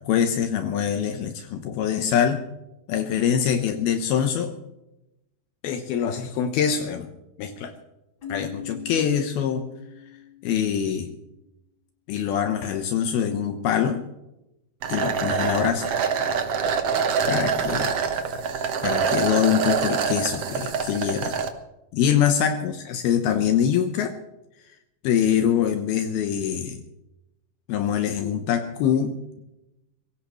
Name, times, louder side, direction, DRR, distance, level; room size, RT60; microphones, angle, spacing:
voice 1, 0.0-2.4 2.9-4.5 5.6-7.1 7.4-7.7 8.3-9.7 10.4-11.1 12.1-14.0 14.9-15.9 17.3-18.0 18.8-21.3 21.9-24.1 25.0-26.8 27.7-29.1, left 8 dB, 80° left, 7 dB, 2.8 m, -24 dB
Keyboard (musical), 8.2-10.9, left 9 dB, 30° left, 3.4 m, -40 dB
sound 1, 14.8-21.5, right 6 dB, 65° right, 1.5 m, -25 dB
24.0 x 17.0 x 3.1 m, 0.91 s
omnidirectional pair, 4.5 m